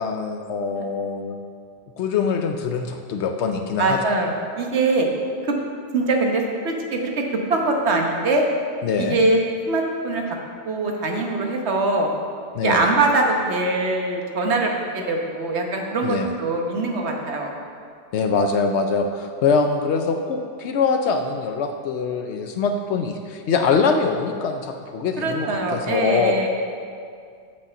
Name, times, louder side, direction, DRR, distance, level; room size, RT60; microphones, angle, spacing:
voice 1, 0.0-1.4 2.0-4.1 8.8-9.2 12.5-12.8 16.0-16.3 18.1-26.5, left 5 dB, 80° left, 5 dB, 0.9 m, -23 dB
voice 2, 3.8-5.1 5.4-5.5 5.9-7.1 7.5-8.4 9.0-9.4 9.6-10.4 10.6-12.1 12.6-17.5 25.2-26.5, right 2 dB, 80° right, 1 dB, 1.4 m, -22 dB
8.2 x 5.5 x 7.0 m, 2.2 s
omnidirectional pair, 1.1 m